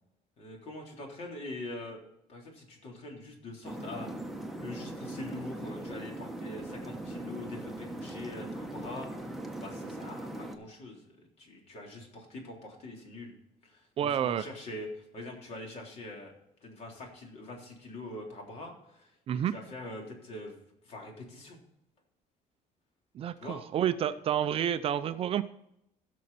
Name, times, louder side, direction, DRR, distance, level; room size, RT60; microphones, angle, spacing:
voice 1, 0.4-4.1 4.6-9.3 9.6-13.3 13.6-16.3 16.6-19.1 19.4-20.6 20.9-21.6 23.4-23.6 24.0-24.2, left 2 dB, 50° left, 0 dB, 3.5 m, -43 dB
sound 1, 3.6-10.6, right 1 dB, ahead, 1.1 m, -40 dB
voice 2, 14.0-14.5 19.3-19.5 23.1-25.4, right 10 dB, 45° right, 12 dB, 0.5 m, -29 dB
16.5 x 6.4 x 4.2 m, 0.80 s
cardioid pair, 155°, 14 cm